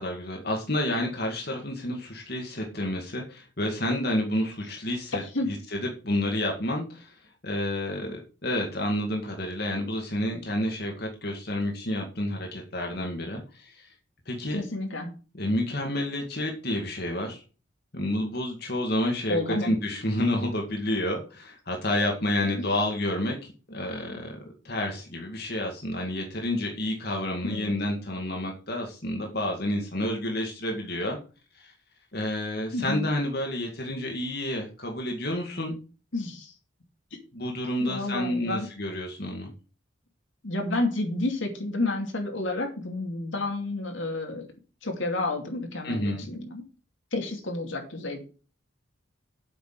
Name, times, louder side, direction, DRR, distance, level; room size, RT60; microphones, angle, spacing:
voice 1, 0.0-7.1 7.4-13.9 14.3-14.6 15.3-17.4 17.9-23.4 23.7-24.4 24.6-31.2 31.5-31.7 32.1-35.8 37.3-39.5 45.8-46.3, left 1 dB, 50° left, 1 dB, 2.1 m, -29 dB
voice 2, 14.5-15.1 19.3-19.7 22.6-22.7 27.4-27.7 32.7-33.1 36.1-36.5 37.8-38.7 40.4-44.5 44.8-46.6 47.1-48.2, left 2 dB, 75° left, 3 dB, 2.6 m, -30 dB
8.3 x 6.1 x 7.6 m, 0.36 s
head